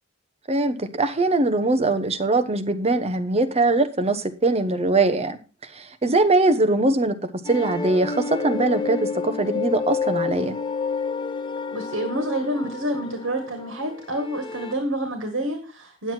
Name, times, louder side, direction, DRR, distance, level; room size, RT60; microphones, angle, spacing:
voice 1, 0.5-5.4 5.7-7.2 7.4-9.0 9.2-10.6, right 2 dB, 30° right, 10 dB, 1.0 m, -21 dB
sound 1, 7.4-14.7, left 5 dB, 25° left, 0.7 m, -30 dB
voice 2, 11.7-16.1, right 1 dB, 75° right, 4 dB, 1.8 m, -28 dB
9.6 x 7.9 x 4.4 m, 0.35 s
head